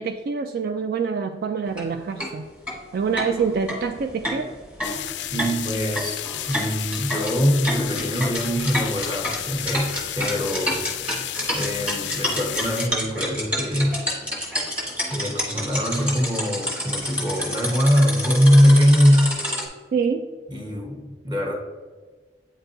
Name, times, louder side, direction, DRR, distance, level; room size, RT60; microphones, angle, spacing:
voice 1, 0.0-2.5 2.9-4.5 19.9-20.3, right 5 dB, 60° right, 7 dB, 0.3 m, -26 dB
sound 1, 1.7-1.8 2.2-2.3 2.7-2.8 3.2-19.7, equal, 5° right, 1.3 m, -29 dB
sound 2, 4.8-12.9, left 13 dB, 85° left, 0.3 m, -32 dB
voice 2, 5.3-6.2 6.5-10.8 11.5-14.0 15.0-19.4 20.5-21.5, equal, 25° right, 0 dB, 1.2 m, -22 dB
8.6 x 4.5 x 2.6 m, 1.4 s
head